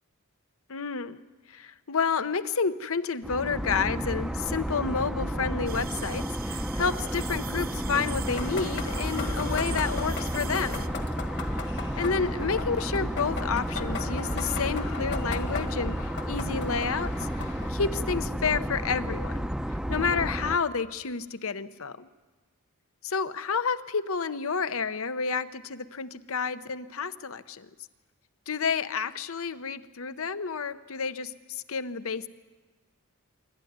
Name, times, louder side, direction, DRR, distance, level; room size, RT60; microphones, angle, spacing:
voice 1, 0.7-1.2 1.5-10.9 12.0-19.5 19.9-22.1 23.0-27.7 28.5-32.3, left 5 dB, 70° left, 13 dB, 0.8 m, -30 dB
sound 1, 3.2-20.6, equal, ahead, 0.6 m, -32 dB
sound 2, 5.7-10.9, right 11 dB, 40° right, 0.6 m, -42 dB
sound 3, 8.3-17.7, left 4 dB, 50° left, 1.8 m, -38 dB
26.5 x 12.5 x 9.4 m, 1.3 s
head